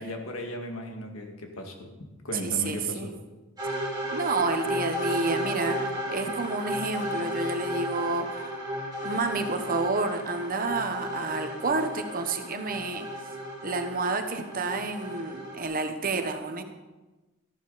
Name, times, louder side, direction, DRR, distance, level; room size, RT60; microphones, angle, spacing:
voice 1, 0.0-3.1, left 1 dB, 80° left, 3 dB, 2.0 m, -37 dB
voice 2, 2.4-3.1 4.1-5.8 6.1-8.6 9.0-13.1 13.6-16.6, right 3 dB, 45° right, 7 dB, 1.1 m, -29 dB
sound 1, 3.6-15.6, equal, 20° right, 2.9 m, -33 dB
13.5 x 12.0 x 4.1 m, 1.1 s
head